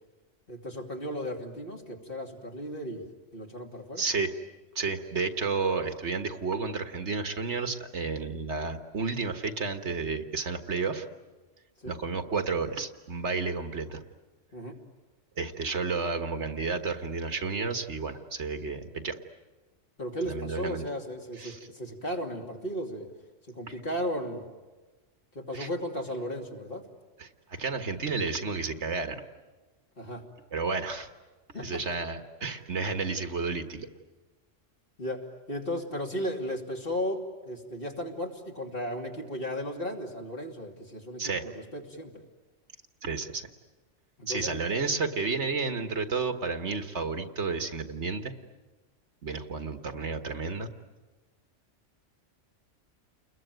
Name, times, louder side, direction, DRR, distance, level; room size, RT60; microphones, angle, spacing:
voice 1, 0.5-3.1 3.3-4.0 11.8-11.9 14.5-14.8 20.0-23.1 23.5-24.5 25.3-26.9 30.0-30.2 31.5-31.8 35.0-42.2 44.2-44.6, equal, 50° left, 1 dB, 2.9 m, -35 dB
voice 2, 4.0-4.3 4.7-11.1 11.8-14.0 15.4-19.2 20.3-20.8 21.4-21.6 23.7-23.8 25.5-25.7 27.2-29.2 30.5-31.1 31.6-33.9 41.2-41.5 43.0-43.5 44.3-48.3 49.2-50.7, right 4 dB, 65° right, 7 dB, 1.7 m, -31 dB
29.5 x 21.5 x 9.2 m, 1.3 s
omnidirectional pair, 1.3 m